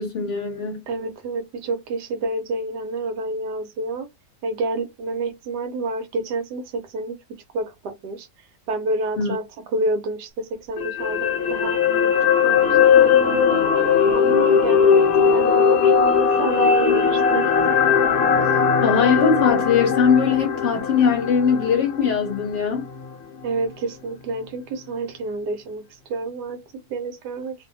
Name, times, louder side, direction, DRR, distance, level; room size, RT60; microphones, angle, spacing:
voice 1, 0.0-0.8 9.2-9.3 18.8-22.8, left 6 dB, 55° left, 0.9 m, -20 dB
voice 2, 0.9-4.1 4.4-7.1 7.5-8.3 8.7-9.4 9.7-12.1 12.4-13.6 14.1-17.9 23.4-25.8 26.1-26.6 26.9-27.5, right 2 dB, 75° right, 1.2 m, -28 dB
sound 1, 10.8-23.1 23.4-23.6, left 7 dB, 70° left, 0.5 m, -19 dB
2.6 x 2.6 x 2.6 m
omnidirectional pair, 1.8 m